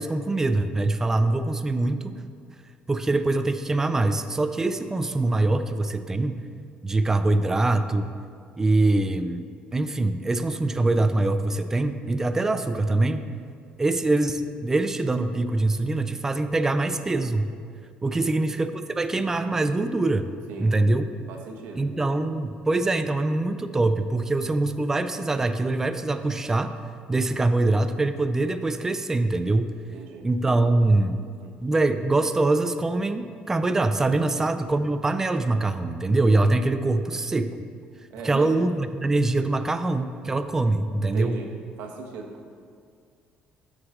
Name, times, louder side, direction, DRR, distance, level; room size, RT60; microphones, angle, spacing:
voice 1, 0.0-2.1 2.9-6.4 6.8-8.1 8.6-9.5 9.7-13.3 13.8-17.5 18.0-20.3 20.6-21.1 21.8-26.8 27.1-29.7 30.2-31.2 31.6-37.6 38.2-41.4, right 2 dB, 15° right, 9 dB, 0.4 m, -23 dB
voice 2, 18.1-18.4 20.5-20.8 21.3-21.9 29.9-30.3 31.4-31.5 34.2-34.4 38.1-38.6 41.0-42.5, right 5 dB, 90° right, 1 dB, 1.1 m, -38 dB
12.5 x 4.8 x 3.7 m, 2.2 s
cardioid pair, 130°, 3 cm